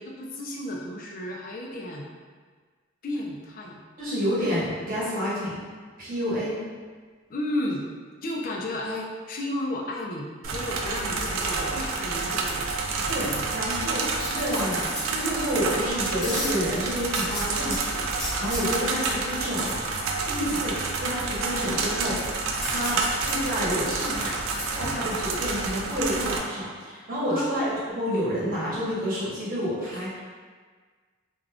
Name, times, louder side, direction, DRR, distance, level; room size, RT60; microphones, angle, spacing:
voice 1, 0.0-2.1 3.0-3.8 7.3-7.8 8.2-12.7 20.4-20.6 27.3-27.6 29.9-30.1, left 1 dB, 45° left, -1 dB, 0.4 m, -33 dB
voice 2, 4.0-5.6 6.0-6.5 11.5-11.7 13.1-19.9 20.3-20.7 21.0-24.4 24.7-30.3, equal, 45° right, -9 dB, 1.0 m, -29 dB
sound 1, 10.4-26.4, right 3 dB, 75° right, 0.3 m, -29 dB
sound 2, 14.2-15.7 16.2-17.8 18.2-19.1 22.5-24.6 25.1-25.2, equal, ahead, 0.8 m, -34 dB
2.4 x 2.3 x 3.4 m, 1.5 s
head